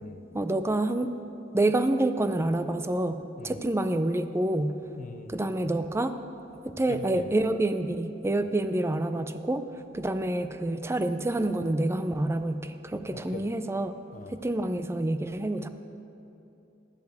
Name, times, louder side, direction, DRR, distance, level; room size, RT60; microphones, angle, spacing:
voice 1, 0.3-1.1 1.5-4.7 5.3-6.1 6.6-9.7 9.9-13.9 14.3-15.7, right 1 dB, 15° right, 10 dB, 0.4 m, -27 dB
voice 2, 5.0-5.3 6.9-7.5 13.1-13.4 14.1-14.4, left 3 dB, 45° left, 7 dB, 0.5 m, -42 dB
16.0 x 11.5 x 3.5 m, 2.8 s
head